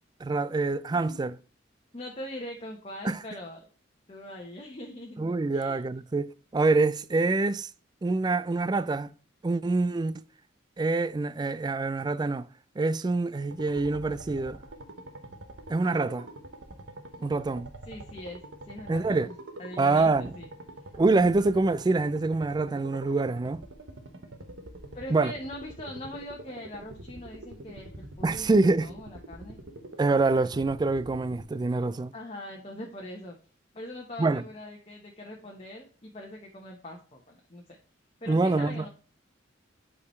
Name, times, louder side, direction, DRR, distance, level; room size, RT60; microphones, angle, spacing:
voice 1, 0.2-1.4 3.0-3.2 5.2-7.7 8.0-9.1 9.4-10.2 10.8-12.5 12.8-14.6 15.7-16.3 17.2-17.7 18.9-19.3 19.8-20.3 20.9-23.6 25.1-25.3 28.2-28.9 30.0-32.1 34.2-34.4 38.3-38.9, right 3 dB, 20° right, 0.3 m, -25 dB
voice 2, 0.9-1.2 1.9-3.7 4.1-5.8 17.9-19.3 19.6-20.5 24.9-29.6 32.1-33.4 33.7-37.6 38.2-38.9, left 1 dB, 30° left, 1.2 m, -42 dB
sound 1, 13.5-31.4, right 1 dB, 80° right, 1.2 m, -45 dB
8.4 x 4.8 x 3.2 m
head